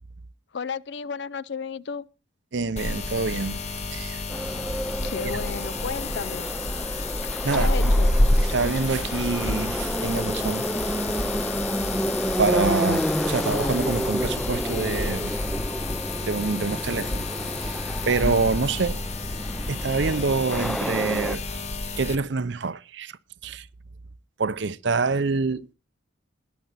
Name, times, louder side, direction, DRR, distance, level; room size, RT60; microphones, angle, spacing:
voice 1, 0.5-2.1 5.0-6.5 7.5-8.1, left 5 dB, 55° left, 0.5 m, -33 dB
voice 2, 2.5-3.6 3.9-4.5 5.3-5.4 7.4-7.9 8.4-10.7 12.4-15.3 16.3-17.2 17.6-17.8 18.1-19.0 19.7-21.4 22.0-23.1 23.4-23.7 24.4-25.7, right 4 dB, 60° right, 0.6 m, -26 dB
sound 1, 2.8-22.2, left 2 dB, 35° left, 1.0 m, -29 dB
Subway metro underground, 4.3-21.4, equal, ahead, 0.5 m, -30 dB
21.0 x 7.1 x 4.1 m
head